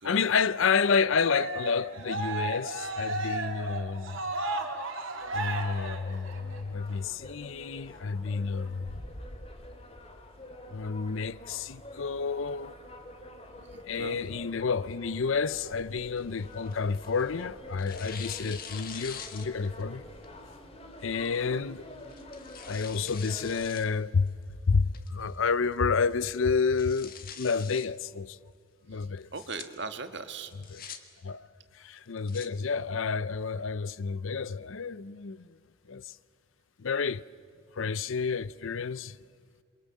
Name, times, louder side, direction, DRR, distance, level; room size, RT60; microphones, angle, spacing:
voice 1, 0.0-4.2 5.3-9.0 10.7-12.7 13.9-20.1 21.0-21.8 22.7-24.4 24.7-28.4 28.9-29.3 30.5-30.8 31.2-31.5 31.7-35.6 35.9-36.1 36.8-37.2 37.7-39.2, left 5 dB, 75° left, 0.6 m, -30 dB
Cheering, 1.1-6.6, right 2 dB, 75° right, 2.9 m, -34 dB
sound 1, 5.2-23.7, left 1 dB, 30° left, 2.2 m, -47 dB
voice 2, 13.7-14.2 21.5-21.6 29.3-30.5, right 4 dB, 55° right, 1.5 m, -39 dB
Tearing, 16.0-17.3 17.8-19.8 20.2-20.3 21.3-21.6 22.1-23.9 24.3-24.4 24.9-25.4 25.7-25.8 26.1-26.2 26.6-27.9 29.2-29.6 30.4-31.0 32.0-32.5, left 7 dB, 45° left, 1.6 m, -44 dB
28.0 x 23.0 x 7.4 m
head